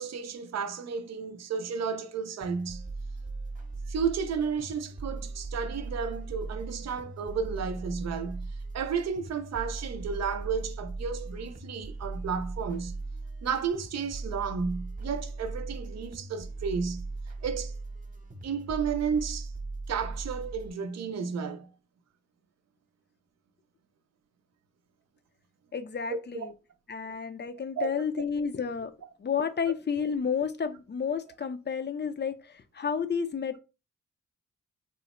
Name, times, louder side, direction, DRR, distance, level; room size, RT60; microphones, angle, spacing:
voice 1, 0.0-2.8 3.9-13.0 13.4-17.1 17.4-17.7 18.4-19.5 19.9-21.7 26.1-26.5 27.8-28.0, right 6 dB, 65° right, 0.5 m, -32 dB
sound 1, 2.4-20.7, right 3 dB, 30° right, 0.7 m, -39 dB
voice 2, 25.7-26.5 26.9-28.9 29.2-33.6, left 6 dB, 40° left, 0.4 m, -31 dB
3.7 x 2.1 x 2.9 m
cardioid pair, 60°, 29 cm